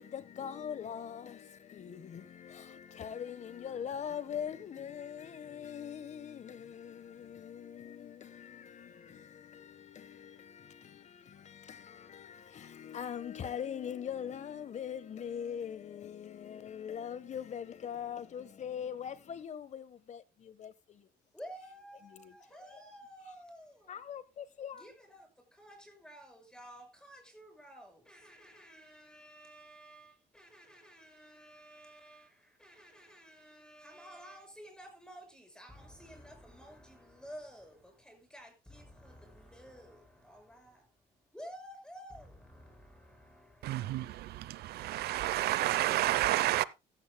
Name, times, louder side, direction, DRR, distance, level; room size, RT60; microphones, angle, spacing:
voice 1, 0.0-21.1 22.0-22.3 22.6-22.8 23.9-24.9, left 8 dB, 45° left, 1.2 m, -42 dB
voice 2, 21.3-24.0 24.7-45.2 46.3-46.7, equal, 5° left, 6.1 m, -53 dB
voice 3, 43.6-46.6, right 15 dB, 70° right, 0.7 m, -30 dB
14.5 x 14.0 x 2.2 m
cardioid pair, 110°, 17 cm